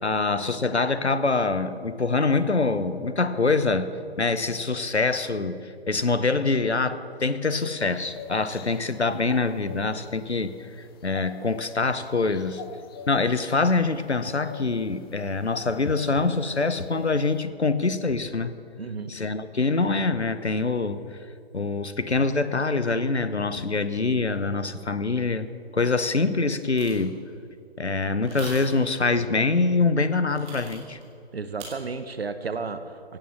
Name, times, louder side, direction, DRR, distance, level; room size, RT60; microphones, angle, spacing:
voice 1, 0.0-3.9 4.2-10.6 11.0-12.6 13.1-18.5 19.1-21.2 21.5-25.5 25.7-27.2 27.8-31.0, left 3 dB, 85° left, 13 dB, 1.0 m, -25 dB
sound 1, 7.6-17.4, left 5 dB, 20° left, 0.9 m, -46 dB
voice 2, 18.8-19.1 31.3-33.2, right 4 dB, 65° right, 11 dB, 1.0 m, -33 dB
sound 2, 26.8-27.1 28.2-28.9 30.3-31.0 31.6-31.7, right 4 dB, 20° right, 2.8 m, -41 dB
17.0 x 9.0 x 7.5 m, 2.5 s
figure-of-eight pair, 135°, 33 cm